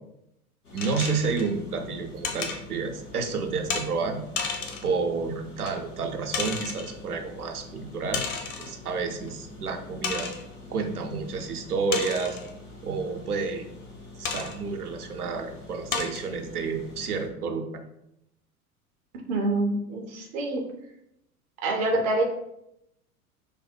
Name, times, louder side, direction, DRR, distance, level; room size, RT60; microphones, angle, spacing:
sound 1, 0.6-17.3, left 2 dB, 90° left, 0.9 m, -46 dB
voice 1, 0.7-10.3 10.7-12.4 12.8-13.8 14.2-17.8, right 4 dB, 85° right, 4 dB, 0.6 m, -30 dB
sound 2, 0.8-1.5 2.2-2.6 3.7-3.9 4.4-4.9 5.7-5.8 6.3-6.9 8.1-8.8 9.3-9.4 10.0-10.4 11.9-12.5 14.2-14.6 15.2-15.3 15.9-16.3, left 5 dB, 55° left, 0.8 m, -32 dB
voice 2, 19.3-20.6 21.6-22.2, right 2 dB, 20° right, 2 dB, 0.3 m, -26 dB
3.2 x 2.1 x 4.2 m, 0.81 s
figure-of-eight pair, 80°, 44 cm